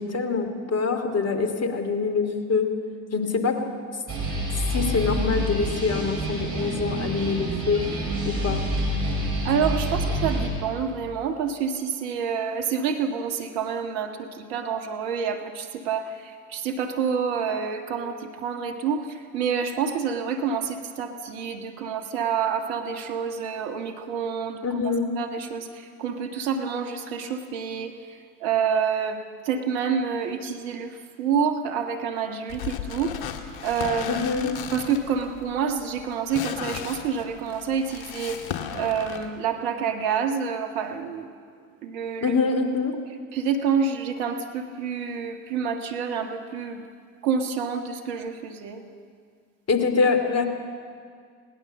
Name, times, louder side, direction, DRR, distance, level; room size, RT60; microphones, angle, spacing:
voice 1, 0.0-2.7 3.1-3.6 4.7-7.8 8.2-8.6 24.6-25.1 34.1-34.5 42.2-42.9 49.7-50.5, left 4 dB, 35° left, 7 dB, 2.8 m, -24 dB
sound 1, 4.1-10.5, right 1 dB, 45° right, 7.4 m, -27 dB
voice 2, 9.5-19.1 19.3-24.6 25.2-25.7 26.0-27.9 28.4-29.2 29.5-30.9 31.2-33.1 33.6-34.2 34.7-38.4 38.7-41.3 41.8-42.4 43.3-46.8 47.2-48.8, right 6 dB, 70° right, 5 dB, 1.8 m, -28 dB
sound 2, 32.5-39.3, left 8 dB, 60° left, 2.0 m, -35 dB
20.0 x 18.5 x 7.5 m, 2.1 s
hypercardioid pair, 60°, 42 cm